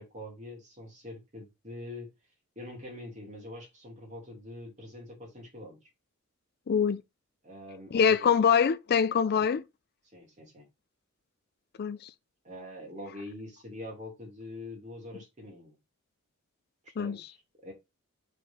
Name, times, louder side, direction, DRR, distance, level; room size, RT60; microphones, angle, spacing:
voice 1, 0.0-2.1 2.6-5.9 7.4-8.3 9.4-9.5 10.1-10.6 12.4-15.8 16.8-17.7, left 1 dB, 35° right, 2.7 m, -44 dB
voice 2, 6.7-7.0 7.9-9.6 11.8-12.1 17.0-17.2, left 7 dB, 45° left, 0.4 m, -24 dB
5.3 x 4.1 x 4.3 m
head